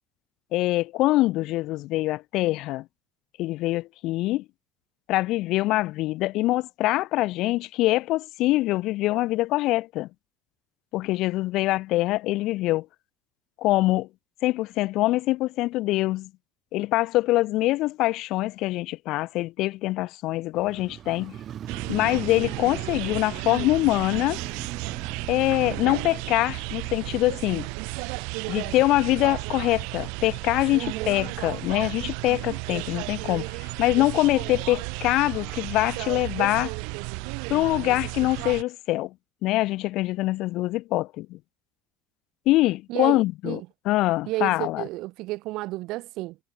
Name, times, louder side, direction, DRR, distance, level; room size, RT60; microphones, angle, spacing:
voice 1, 0.5-2.8 3.4-4.4 5.1-10.1 10.9-12.9 13.6-14.1 14.4-16.3 16.7-21.3 21.9-24.4 25.3-27.7 28.5-36.7 37.5-39.1 39.4-41.4 42.5-43.6 43.9-44.8, left 18 dB, 60° left, 0.3 m, -24 dB
Motorcycle, 20.5-30.7 31.0-31.1, right 10 dB, 40° right, 4.5 m, -41 dB
sound 1, 21.7-38.6, right 35 dB, 80° right, 2.3 m, -34 dB
voice 2, 30.7-31.2 42.9-43.7 44.3-46.4, right 19 dB, 65° right, 0.5 m, -32 dB
cardioid pair, 145°, 0 cm